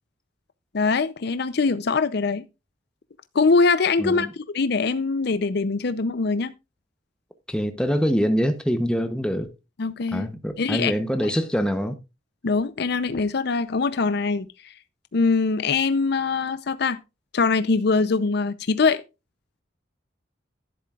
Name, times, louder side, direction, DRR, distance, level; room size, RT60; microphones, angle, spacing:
voice 1, 0.7-2.4 3.3-6.5 9.8-10.3 10.6-10.9 12.4-14.7 15.1-17.0 17.3-19.0, left 4 dB, 60° left, 0.6 m, -23 dB
voice 2, 4.0-4.3 7.5-9.5 10.1-12.0, equal, 5° left, 0.8 m, -24 dB
11.5 x 11.0 x 2.4 m
head